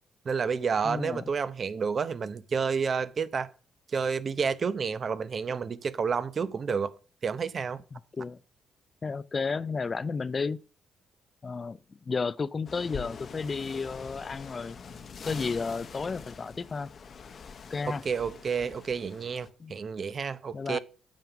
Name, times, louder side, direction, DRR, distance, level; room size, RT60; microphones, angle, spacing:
voice 1, 0.2-3.5 3.9-6.9 7.2-7.8 17.9-20.8, right 6 dB, 45° right, 0.7 m, -30 dB
voice 2, 0.8-1.2 7.9-8.4 9.0-10.6 11.4-11.8 12.1-14.8 15.2-16.9 17.7-18.0 19.6-19.7 20.5-20.8, left 4 dB, 35° left, 0.4 m, -32 dB
sound 1, 12.7-19.5, left 5 dB, 50° left, 1.0 m, -44 dB
9.0 x 5.5 x 5.8 m
cardioid pair, 90°, 0 cm